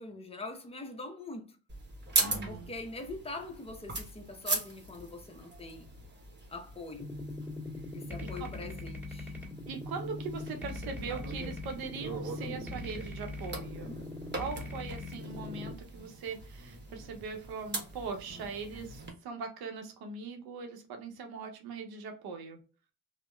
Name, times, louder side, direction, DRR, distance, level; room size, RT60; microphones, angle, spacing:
voice 1, 0.0-1.6 2.5-5.9 6.5-7.1 7.9-9.3 18.3-18.5, left 3 dB, 15° left, 0.7 m, -43 dB
sound 1, 1.7-19.1, right 3 dB, 30° right, 1.0 m, -40 dB
voice 2, 2.2-2.7 8.4-8.5 9.7-13.9 14.4-22.6, right 5 dB, 80° right, 0.7 m, -41 dB
sound 2, 7.0-15.7, left 2 dB, 5° right, 1.4 m, -41 dB
2.8 x 2.1 x 2.3 m
supercardioid pair, 60°, 36 cm